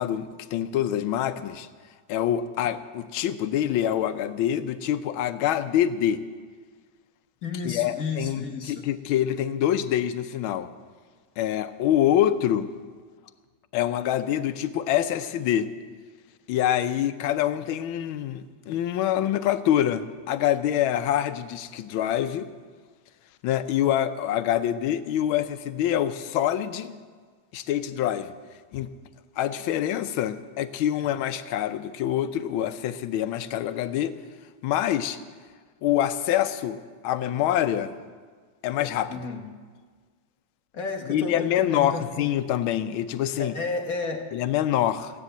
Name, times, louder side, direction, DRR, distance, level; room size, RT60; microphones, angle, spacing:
voice 1, 0.0-1.7 2.1-6.2 7.6-10.7 11.4-12.7 13.7-15.7 16.5-22.5 23.4-27.0 27.5-28.3 28.7-28.9 29.4-34.2 34.6-35.2 35.8-37.9 38.6-39.3 41.1-43.5 44.3-45.2, left 11 dB, 80° left, 10 dB, 1.5 m, -25 dB
voice 2, 7.4-8.8 39.1-39.5 40.7-42.3 43.4-44.3, left 3 dB, 50° left, 4 dB, 1.5 m, -32 dB
15.0 x 10.0 x 7.8 m, 1.5 s
omnidirectional pair, 2.3 m